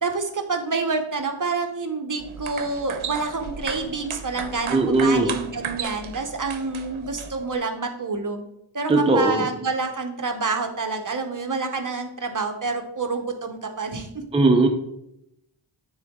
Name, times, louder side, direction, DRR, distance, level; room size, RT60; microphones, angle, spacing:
voice 1, 0.0-8.4 8.7-14.2, right 4 dB, 40° right, 5 dB, 0.8 m, -28 dB
sound 1, 2.2-7.6, right 7 dB, 75° right, 0.7 m, -35 dB
voice 2, 4.7-5.3 8.9-9.5 14.3-14.7, right 2 dB, 10° right, 3 dB, 0.6 m, -18 dB
9.2 x 3.9 x 3.6 m, 0.81 s
wide cardioid pair, 95°, 50 cm